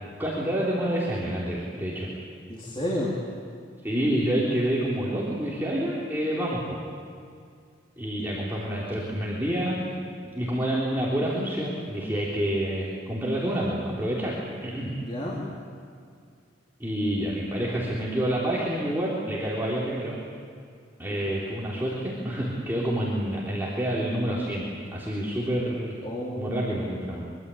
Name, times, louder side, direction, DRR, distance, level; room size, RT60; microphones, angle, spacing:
voice 1, 0.2-2.1 3.8-6.8 8.0-9.8 10.3-14.4 14.6-14.9 16.8-20.2 21.0-26.0 26.4-27.2, right 1 dB, 10° right, -7 dB, 3.5 m, -28 dB
voice 2, 2.5-3.1 15.1-15.5 21.1-21.2 26.0-26.8, left 1 dB, 30° left, -3 dB, 3.4 m, -31 dB
24.0 x 24.0 x 8.5 m, 2.3 s
head